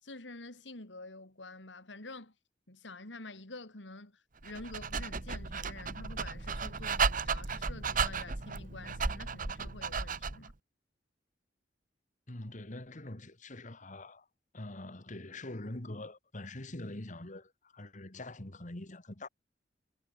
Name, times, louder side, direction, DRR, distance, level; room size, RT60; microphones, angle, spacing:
voice 1, 0.0-2.3 2.7-10.5, left 2 dB, 85° left, 3.7 m, -48 dB
Dog, 4.4-10.5, right 5 dB, 50° right, 1.5 m, -34 dB
voice 2, 12.3-14.3 14.5-19.3, left 1 dB, 45° left, 2.0 m, -44 dB
head